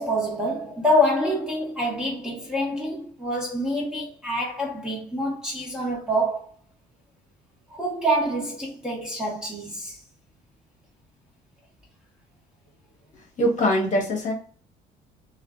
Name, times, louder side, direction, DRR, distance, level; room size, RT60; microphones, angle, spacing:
voice 1, 0.0-6.5 7.7-10.0, equal, 5° right, 1.0 m, -26 dB
voice 2, 13.4-14.3, equal, 45° left, 0.9 m, -22 dB
2.4 x 2.2 x 2.3 m
cardioid pair, 110°, 17 cm